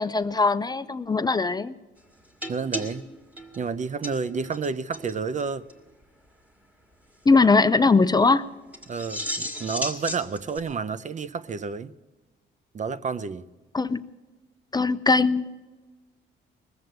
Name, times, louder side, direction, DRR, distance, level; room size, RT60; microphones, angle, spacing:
voice 1, 0.0-1.7 7.3-8.4 13.7-14.0 14.7-15.4, left 3 dB, 20° left, 0.5 m, -20 dB
sound 1, 2.4-4.7 4.9-5.1 5.4-5.5 5.7-5.8 8.7-10.6, equal, 5° right, 1.9 m, -34 dB
voice 2, 2.5-3.0 3.6-5.6 8.9-11.9 12.7-13.4, right 5 dB, 40° right, 0.6 m, -30 dB
19.5 x 8.0 x 7.9 m
cardioid pair, 90°, 20 cm